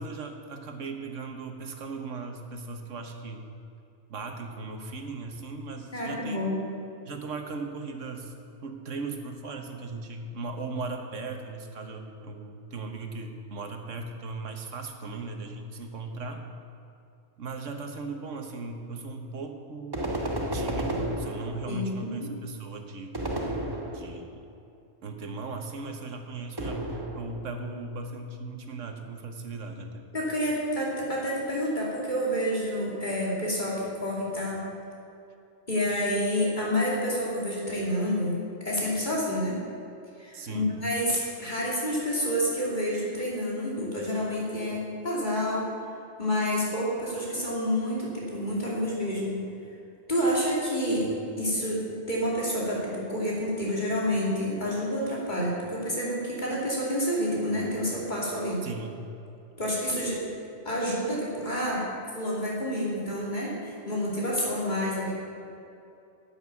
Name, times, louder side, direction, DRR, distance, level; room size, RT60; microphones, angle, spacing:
voice 1, 0.0-3.5 4.1-6.5 7.1-8.3 8.6-16.4 17.4-20.1 20.5-23.2 23.9-24.4 25.0-30.1 40.3-40.7 58.6-59.0, right 3 dB, 85° right, 5 dB, 1.5 m, -38 dB
voice 2, 5.9-6.6 21.7-22.3 30.1-34.7 35.7-39.6 40.2-45.7 46.2-49.4 50.1-51.1 51.4-58.6 59.6-60.2 60.6-61.9 62.1-65.1, equal, 40° left, -5 dB, 2.8 m, -29 dB
sound 1, 19.9-21.9 23.1-24.3 26.6-27.6, right 1 dB, 20° right, 1.1 m, -32 dB
11.0 x 8.8 x 7.0 m, 2.7 s
omnidirectional pair, 1.2 m